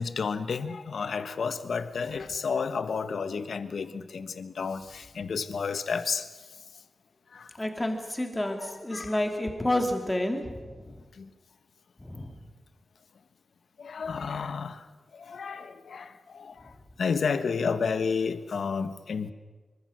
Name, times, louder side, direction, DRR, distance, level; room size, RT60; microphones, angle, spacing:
voice 1, 0.0-6.3 7.3-7.5 8.6-9.2 11.2-11.3 13.8-14.8 15.2-16.6 17.0-19.3, left 5 dB, 75° left, 10 dB, 1.3 m, -31 dB
voice 2, 7.6-11.0 12.0-12.4, left 1 dB, 10° left, 4 dB, 2.6 m, -30 dB
25.5 x 24.0 x 6.5 m, 1.3 s
wide cardioid pair, 180°, 0 cm